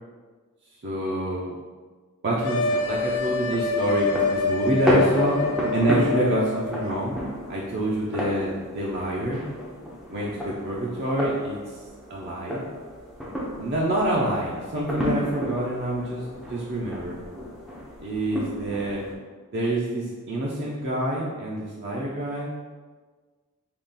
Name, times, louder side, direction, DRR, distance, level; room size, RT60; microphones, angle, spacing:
voice 1, 0.8-1.5 2.2-5.4 5.7-7.2 7.5-9.4 10.1-11.6 12.1-12.6 13.6-16.2 16.5-17.2 18.0-19.0 19.5-22.5, right 1 dB, 50° right, -4 dB, 0.5 m, -27 dB
sound 1, 2.4-6.8, left 4 dB, 70° left, 0.4 m, -26 dB
sound 2, 2.8-19.1, equal, ahead, 0.5 m, -32 dB
3.6 x 2.4 x 3.9 m, 1.4 s
head